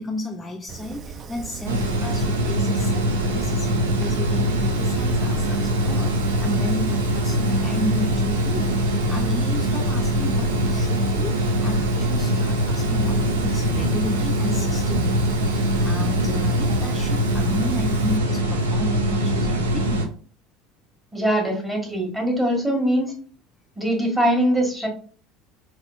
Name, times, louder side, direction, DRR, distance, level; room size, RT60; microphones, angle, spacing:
voice 1, 0.0-20.1, left 1 dB, 20° left, 2 dB, 0.5 m, -33 dB
Fire, 0.7-18.2, right 6 dB, 40° right, 0.4 m, -36 dB
sound 1, 1.7-20.1, equal, 85° right, 0.6 m, -22 dB
voice 2, 21.1-23.1 23.8-24.9, equal, 10° right, 0 dB, 1.6 m, -22 dB
4.2 x 3.0 x 2.5 m, 0.43 s
hypercardioid pair, 75°, 0 cm